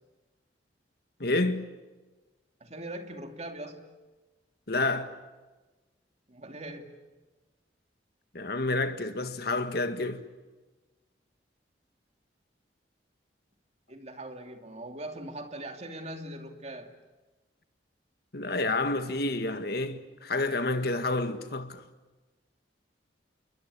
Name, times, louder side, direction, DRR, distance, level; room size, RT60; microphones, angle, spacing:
voice 1, 1.2-1.6 4.7-5.1 8.3-10.2 18.3-21.8, left 2 dB, 60° left, 1.9 m, -29 dB
voice 2, 2.6-3.9 6.3-6.9 13.9-16.9, right 1 dB, 40° right, 2.7 m, -41 dB
29.0 x 22.5 x 8.5 m
head